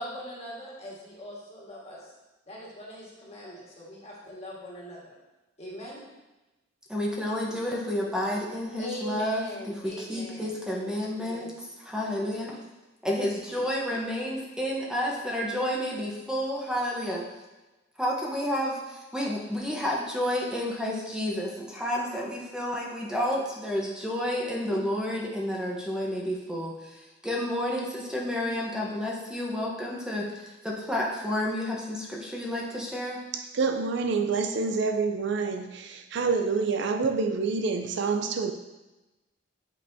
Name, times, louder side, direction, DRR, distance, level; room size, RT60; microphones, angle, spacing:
voice 1, 0.0-2.1 2.5-5.1 5.6-6.0 8.8-10.6 11.2-11.5, equal, 35° left, 1.7 m, -41 dB
voice 2, 6.9-11.5 11.8-12.6 13.0-17.2 18.0-26.7 27.2-33.2, left 1 dB, 5° right, 0.9 m, -30 dB
voice 3, 33.3-38.5, right 4 dB, 65° right, 0.5 m, -27 dB
8.1 x 5.4 x 2.7 m
head